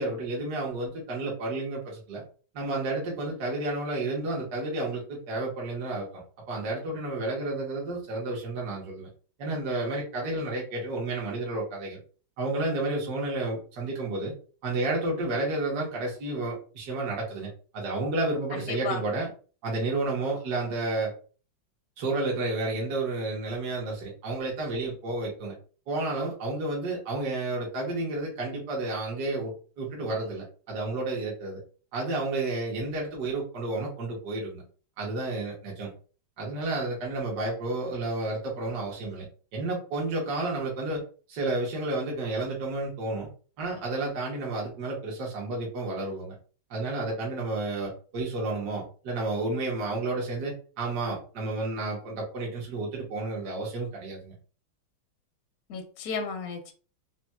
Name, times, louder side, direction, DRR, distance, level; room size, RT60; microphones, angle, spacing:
voice 1, 0.0-2.2 2.5-9.1 9.4-12.0 12.4-14.3 14.6-19.3 19.6-21.1 22.0-25.5 25.9-31.6 31.9-34.6 35.0-35.9 36.4-39.3 39.5-41.0 41.3-43.3 43.6-46.3 46.7-54.3, right 2 dB, 60° right, -3 dB, 1.4 m, -31 dB
voice 2, 18.5-19.0 55.7-56.7, left 5 dB, 70° left, 3 dB, 0.9 m, -33 dB
4.1 x 2.0 x 2.2 m, 0.39 s
omnidirectional pair, 2.1 m